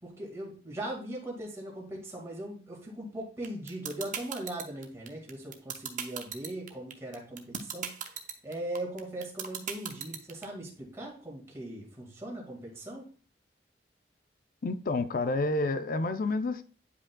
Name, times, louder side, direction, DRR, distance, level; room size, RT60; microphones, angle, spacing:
voice 1, 0.0-8.2 8.4-13.1, right 1 dB, 15° right, 1.9 m, -39 dB
sound 1, 3.4-10.4, right 8 dB, 45° right, 0.8 m, -36 dB
voice 2, 14.6-16.6, left 2 dB, 50° left, 0.5 m, -29 dB
9.7 x 5.1 x 2.2 m
head